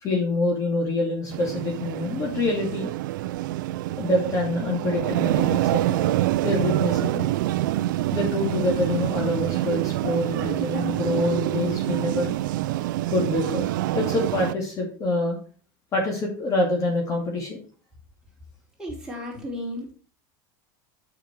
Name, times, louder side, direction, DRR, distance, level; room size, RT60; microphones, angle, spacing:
voice 1, 0.0-2.9 4.0-6.1 6.4-7.3 8.1-12.3 13.1-13.6 13.9-15.4 15.9-17.6, left 2 dB, 30° left, 0 dB, 2.3 m, -26 dB
sound 1, 1.3-14.5, right 15 dB, 80° right, 0.4 m, -26 dB
voice 2, 18.8-19.9, left 1 dB, 5° right, -3 dB, 3.4 m, -34 dB
6.8 x 6.0 x 4.6 m, 0.39 s
supercardioid pair, 120°, 10 cm